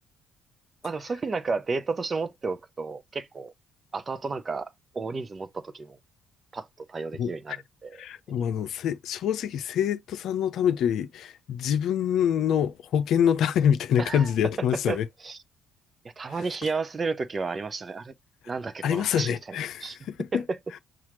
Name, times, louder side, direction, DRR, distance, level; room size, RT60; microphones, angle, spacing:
voice 1, 0.8-3.5 3.9-6.0 6.5-8.0 8.3-8.4 14.0-14.3 14.9-15.4 16.2-18.1 18.5-20.0, right 4 dB, 35° right, 0.6 m, -32 dB
voice 2, 7.2-7.6 8.0-15.1 18.8-20.4, left 9 dB, 65° left, 0.6 m, -26 dB
5.7 x 2.5 x 3.0 m
hypercardioid pair, 55°, 0 cm